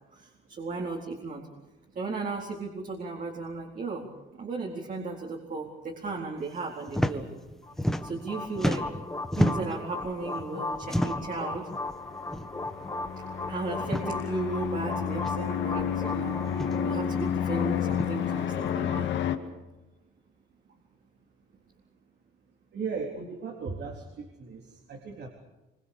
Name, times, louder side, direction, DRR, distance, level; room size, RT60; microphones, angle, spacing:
voice 1, 0.1-1.5 1.9-4.1 4.4-7.2 8.0-8.9 9.4-11.7 13.5-19.1, right 3 dB, 45° right, -1 dB, 4.2 m, -35 dB
sound 1, 6.9-7.2 7.4-8.3 8.5-9.8 10.8-11.4 12.3-12.5 12.8-12.9 13.8-14.1 15.2-15.3 16.5-16.8 17.9-18.1, equal, ahead, 1.6 m, -29 dB
sound 2, 7.6-19.0, left 2 dB, 20° left, 1.3 m, -38 dB
sound 3, 12.0-19.4, left 8 dB, 70° left, 2.3 m, -30 dB
voice 2, 22.7-24.6 24.9-25.3, right 5 dB, 60° right, 1 dB, 3.8 m, -36 dB
25.5 x 24.5 x 6.8 m, 1.1 s
cardioid pair, 110°, 20 cm